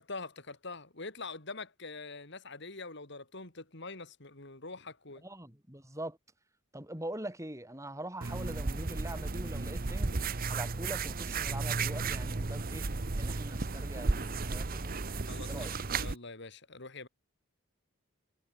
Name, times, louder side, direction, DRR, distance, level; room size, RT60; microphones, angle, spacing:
voice 1, 0.0-5.2 15.2-17.1, left 3 dB, 55° left, 3.2 m, -44 dB
voice 2, 5.2-6.2 6.7-10.1 10.5-12.9 13.2-14.9 15.5-15.7, right 1 dB, 15° right, 6.8 m, -43 dB
sound 1, 8.2-16.2, right 3 dB, 45° right, 0.9 m, -34 dB
head